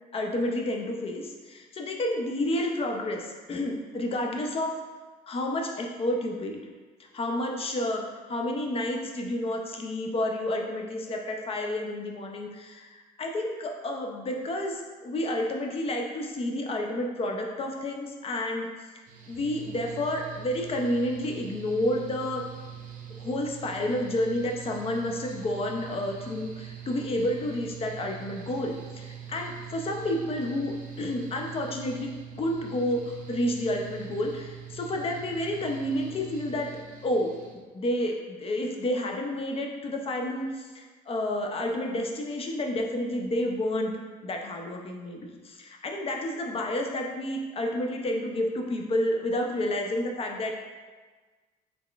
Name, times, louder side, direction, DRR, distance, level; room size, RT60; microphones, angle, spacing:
voice 1, 0.1-4.8 5.3-6.6 7.0-18.7 19.3-22.4 23.1-32.1 32.4-36.7 37.0-50.5, left 1 dB, 35° left, 1 dB, 0.5 m, -30 dB
Mechanical fan, 19.1-37.5, right 9 dB, 50° right, 0.6 m, -43 dB
3.7 x 3.5 x 2.3 m, 1.4 s
cardioid pair, 110°, 17 cm